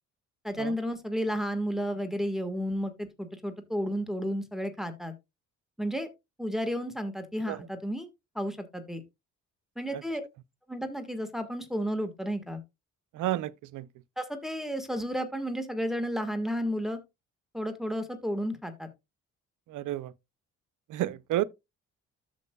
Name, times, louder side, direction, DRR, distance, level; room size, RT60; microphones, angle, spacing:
voice 1, 0.4-5.1 5.8-6.1 6.4-8.1 8.3-9.0 9.7-10.2 10.7-12.6 14.2-17.0 17.5-18.9, equal, ahead, 1.6 m, -32 dB
voice 2, 13.1-13.9 19.7-20.1 20.9-21.4, right 14 dB, 80° right, 0.6 m, -31 dB
13.5 x 5.3 x 2.3 m
cardioid pair, 85°, 30 cm